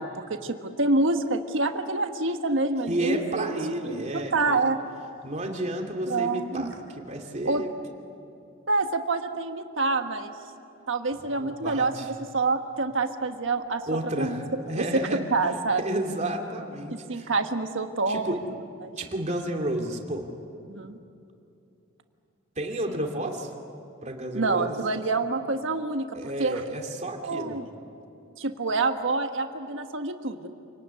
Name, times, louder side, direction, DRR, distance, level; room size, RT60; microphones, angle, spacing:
voice 1, 0.0-3.5 3.8-4.8 6.1-6.7 7.4-7.6 8.7-10.3 10.9-13.8 14.2-14.4 14.8-15.0 15.3-15.8 16.9-18.4 18.8-18.9 20.7-21.0 22.9-23.0 24.3-26.1 26.4-26.6 27.2-27.7 28.4-30.5, right 3 dB, 65° right, 6 dB, 1.5 m, -27 dB
voice 2, 2.9-4.7 5.2-6.7 7.0-7.7 11.3-12.1 13.9-15.2 15.8-17.3 18.1-18.4 19.0-20.3 22.6-23.5 24.0-24.8 26.1-27.6, right 1 dB, 35° right, 2 dB, 2.8 m, -31 dB
Keyboard (musical), 13.4-15.7, left 2 dB, 65° left, 3.9 m, -45 dB
27.5 x 19.0 x 9.7 m, 2.7 s
head